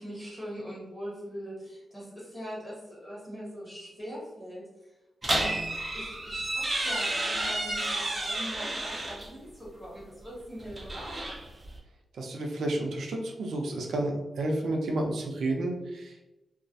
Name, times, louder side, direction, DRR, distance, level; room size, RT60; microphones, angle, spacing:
voice 1, 0.0-4.6 5.2-5.6 5.9-11.3, equal, 10° left, -7 dB, 1.1 m, -42 dB
sound 1, 5.2-9.3 10.6-11.8, right 1 dB, 25° right, 0.4 m, -31 dB
voice 2, 12.2-16.2, right 1 dB, 85° right, 0 dB, 0.5 m, -31 dB
2.3 x 2.1 x 2.6 m, 0.99 s
wide cardioid pair, 130°, 0 cm